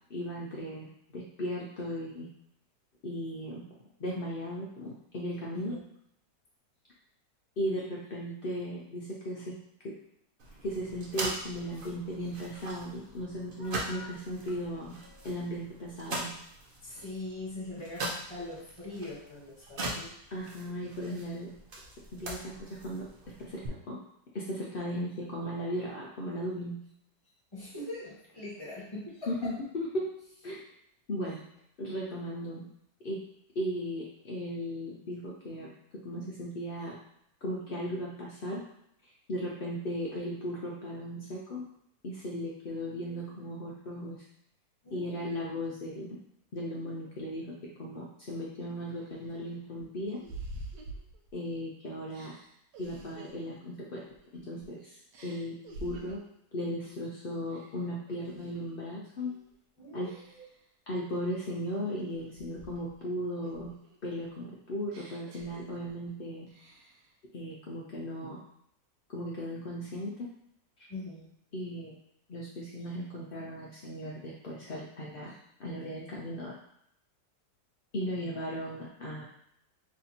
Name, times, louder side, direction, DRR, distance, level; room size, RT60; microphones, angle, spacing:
voice 1, 0.1-2.3 3.0-3.6 4.0-5.8 7.6-9.5 10.6-15.0 15.2-16.3 20.3-21.5 22.1-23.1 23.4-24.0 24.3-26.8 29.3-30.1 30.4-30.6 31.1-31.4 31.8-32.7 33.0-33.2 33.5-35.7 36.0-37.0 37.4-38.6 39.3-41.6 42.0-44.2 44.9-46.2 46.5-50.2 51.3-52.3 52.8-54.0 54.4-55.0 55.2-55.6 55.8-56.2 56.5-59.3 59.9-60.1 60.9-63.7 64.0-66.5 67.3-68.4 69.1-70.3 71.5-71.9 72.3-75.3 75.6-76.5 77.9-79.2, equal, 75° left, -5 dB, 0.5 m, -36 dB
sound 1, 10.4-23.7, right 2 dB, 55° right, 0.6 m, -41 dB
voice 2, 16.8-20.1 27.5-29.5 44.8-45.6 59.8-60.4 70.9-71.3 78.2-78.3, left 2 dB, 15° left, -7 dB, 1.5 m, -42 dB
sound 2, 48.3-48.4 48.9-51.6 52.1-54.7 55.1-56.4 56.8-57.1 57.5-58.8 59.2-59.5 60.0-60.6 61.1-63.1 63.4-66.1 66.5-67.1, right 2 dB, 90° right, 1.3 m, -49 dB
3.2 x 2.7 x 4.2 m, 0.75 s
omnidirectional pair, 1.9 m